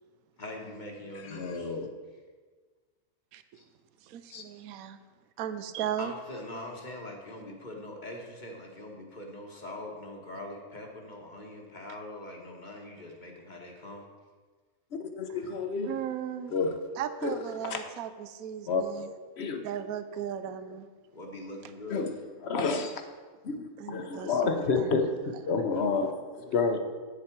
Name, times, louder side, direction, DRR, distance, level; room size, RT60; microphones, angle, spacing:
voice 1, 0.4-1.7 3.5-3.6 6.0-14.0 21.1-22.1, left 1 dB, 35° left, 1 dB, 1.2 m, -42 dB
voice 2, 1.2-1.9 4.3-4.4 15.0-15.9 16.5-16.8 17.2-17.4 17.6-17.8 18.7-18.8 19.4-19.6 21.9-22.1 22.4-23.0 23.4-26.8, left 4 dB, 55° left, 6 dB, 0.9 m, -29 dB
voice 3, 4.0-5.0 5.4-6.1 15.3-15.5 15.8-16.5 17.0-19.1 19.6-20.9 23.8-25.1 25.5-25.6, right 9 dB, 75° right, 11 dB, 1.0 m, -37 dB
8.8 x 7.4 x 4.4 m, 1.4 s
omnidirectional pair, 1.6 m